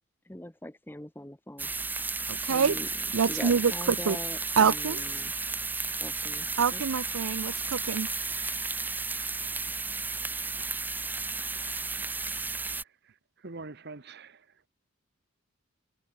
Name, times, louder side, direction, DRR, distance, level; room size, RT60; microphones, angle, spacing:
voice 1, 0.3-1.7 2.5-5.3 6.0-6.9, left 1 dB, 10° left, 1.0 m, -42 dB
sound 1, 1.6-12.8, right 4 dB, 10° right, 0.7 m, -33 dB
voice 2, 2.3-2.7 3.1-4.2 4.6-5.0 6.6-8.1, right 6 dB, 75° right, 0.5 m, -26 dB
voice 3, 12.8-14.6, right 3 dB, 50° right, 1.1 m, -45 dB
head